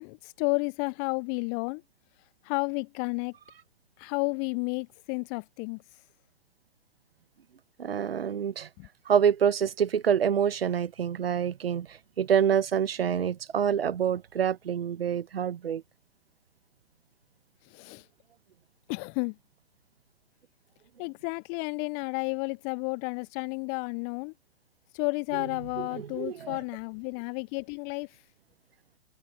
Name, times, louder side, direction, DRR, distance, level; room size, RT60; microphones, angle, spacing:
voice 1, 0.0-1.8 2.4-3.4 4.0-6.0 8.8-8.9 17.6-18.1 18.9-19.4 21.0-24.3 24.9-28.2, left 37 dB, 5° left, 0.3 m, -32 dB
voice 2, 7.8-8.7 9.1-15.8 26.2-26.6, right 8 dB, 60° right, 1.2 m, -26 dB
figure-of-eight pair, 120°, 33 cm